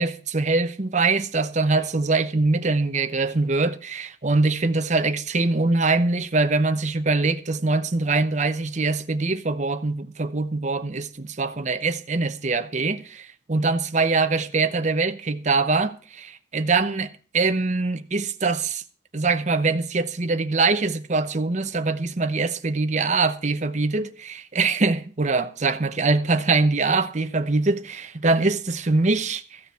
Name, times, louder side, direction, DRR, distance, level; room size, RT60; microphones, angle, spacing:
voice 1, 0.0-18.8 19.1-29.6, right 3 dB, 40° right, 0.9 m, -23 dB
14.5 x 7.0 x 6.8 m
head